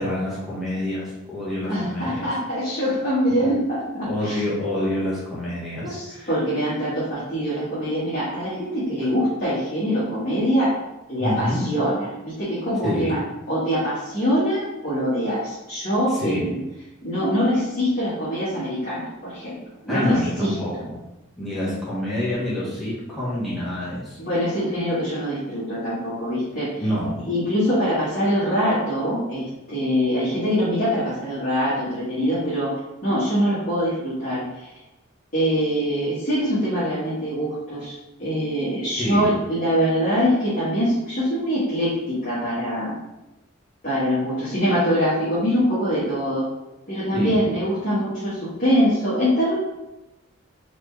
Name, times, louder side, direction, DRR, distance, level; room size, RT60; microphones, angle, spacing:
voice 1, 0.0-2.3 3.3-3.5 4.0-6.3 11.2-11.7 12.8-13.2 16.1-16.5 19.9-21.0 21.4-24.2 26.8-27.3 39.0-39.4 47.1-47.4, left 1 dB, ahead, -9 dB, 1.3 m, -27 dB
voice 2, 1.7-4.4 5.8-10.7 11.1-13.2 13.5-16.6 17.0-19.6 19.8-20.8 24.2-26.7 27.3-32.7 33.0-34.7 35.3-37.9 38.2-42.9 43.8-46.5 46.9-49.6, equal, 40° left, -12 dB, 1.5 m, -23 dB
4.1 x 3.4 x 3.2 m, 0.97 s
head